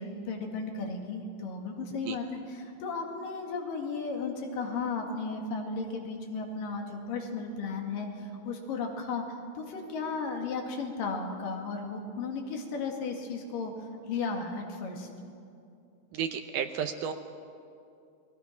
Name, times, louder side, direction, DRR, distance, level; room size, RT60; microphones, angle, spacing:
voice 1, 0.0-9.2 9.6-13.7 14.1-15.1, left 4 dB, 90° left, 2 dB, 3.9 m, -35 dB
voice 2, 16.1-17.1, right 8 dB, 75° right, 6 dB, 2.3 m, -33 dB
29.0 x 21.5 x 5.7 m, 2.5 s
omnidirectional pair, 3.8 m